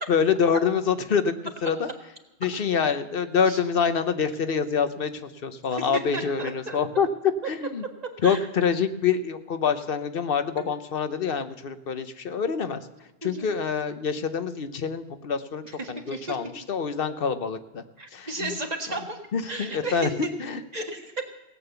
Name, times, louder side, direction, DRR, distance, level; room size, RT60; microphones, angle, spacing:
voice 1, 0.1-1.3 1.6-1.9 2.4-5.1 5.4-7.1 7.5-7.8 8.2-12.8 13.2-15.6 15.9-17.8 18.1-18.5 19.3-20.6, left 6 dB, 60° left, 10 dB, 1.1 m, -26 dB
voice 2, 5.8-6.8 8.2-8.5 10.6-10.7 13.2-13.5 15.6-16.4 18.0-19.2 19.5-20.3 20.7-21.2, right 2 dB, 40° right, 2 dB, 1.8 m, -34 dB
17.5 x 8.7 x 6.9 m, 1.1 s
omnidirectional pair, 1.1 m